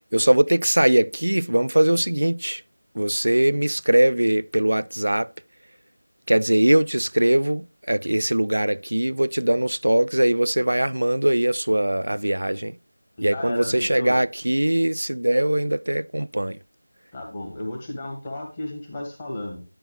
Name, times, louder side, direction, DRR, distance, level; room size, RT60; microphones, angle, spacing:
voice 1, 0.1-2.6 2.9-5.3 6.3-12.8 13.2-16.6, right 1 dB, 70° right, 0.4 m, -21 dB
voice 2, 13.2-14.2 17.1-19.6, left 1 dB, 20° left, 1.8 m, -33 dB
12.0 x 7.9 x 3.2 m
figure-of-eight pair, 170°, 0 cm